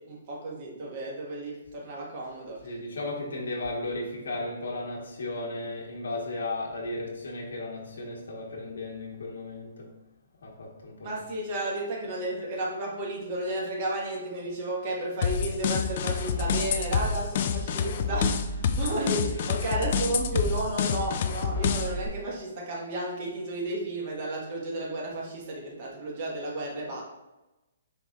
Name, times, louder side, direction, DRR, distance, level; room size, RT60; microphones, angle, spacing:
voice 1, 0.0-2.6 11.0-27.0, right 2 dB, 40° right, -3 dB, 1.4 m, -33 dB
voice 2, 2.6-9.9 10.4-11.1 18.7-18.9, left 2 dB, 80° left, -3 dB, 1.2 m, -35 dB
sound 1, 15.2-22.1, left 6 dB, 45° left, 0.3 m, -28 dB
4.5 x 4.1 x 2.4 m, 1.0 s
hypercardioid pair, 150°, 0 cm